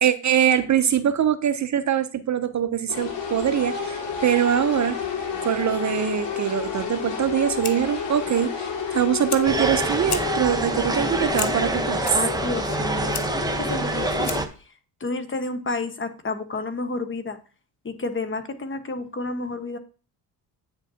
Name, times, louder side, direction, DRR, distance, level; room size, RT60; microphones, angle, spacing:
voice 1, 0.0-5.0 5.4-12.2, right 9 dB, 40° right, 0.7 m, -23 dB
sound 1, 2.9-14.4, left 7 dB, 80° left, 2.3 m, -31 dB
Fire, 7.2-14.7, left 10 dB, 60° left, 0.9 m, -38 dB
sound 2, 9.4-14.5, right 2 dB, 10° right, 0.9 m, -26 dB
voice 2, 12.1-14.7 15.0-17.4 17.8-19.8, left 3 dB, 30° left, 1.2 m, -30 dB
9.1 x 6.8 x 2.8 m
cardioid pair, 90°, 43 cm